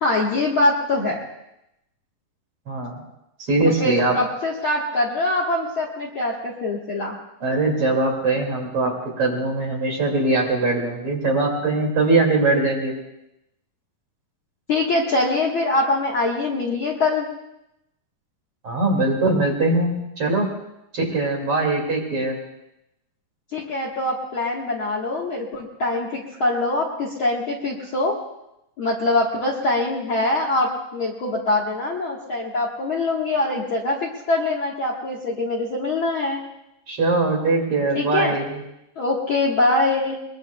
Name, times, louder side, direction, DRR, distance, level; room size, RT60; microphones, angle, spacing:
voice 1, 0.0-1.2 3.8-7.2 14.7-17.3 23.5-28.2 28.8-36.4 37.9-38.3 39.0-40.2, left 2 dB, 50° left, -2 dB, 1.7 m, -23 dB
voice 2, 3.4-4.2 7.4-12.9 18.6-20.5 20.9-22.4 36.9-38.6, right 2 dB, 45° right, 0 dB, 3.1 m, -21 dB
23.0 x 21.5 x 2.3 m, 0.86 s
omnidirectional pair, 3.9 m